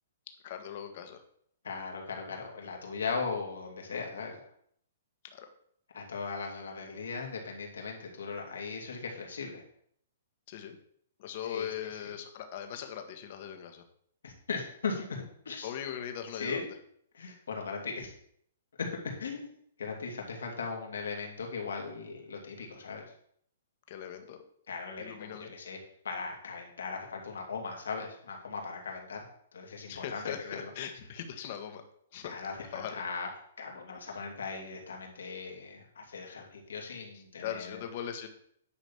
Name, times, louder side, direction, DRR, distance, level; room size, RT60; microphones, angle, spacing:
voice 1, 0.4-1.2 5.3-5.5 10.5-10.8 11.2-13.8 15.6-16.6 23.9-24.4 25.0-25.5 29.9-31.8 32.1-32.4 32.7-33.0 33.9-34.0 37.1-38.3, left 9 dB, 45° left, 6 dB, 1.4 m, -40 dB
voice 2, 1.6-4.5 5.9-9.6 11.5-11.7 12.0-12.1 14.2-15.7 16.3-16.7 17.1-18.1 18.8-19.5 19.8-23.0 24.7-25.8 26.0-30.7 32.2-33.3 33.6-37.8, left 4 dB, 85° left, 1 dB, 2.7 m, -38 dB
9.9 x 4.1 x 7.1 m, 0.66 s
hypercardioid pair, 150°, 0 cm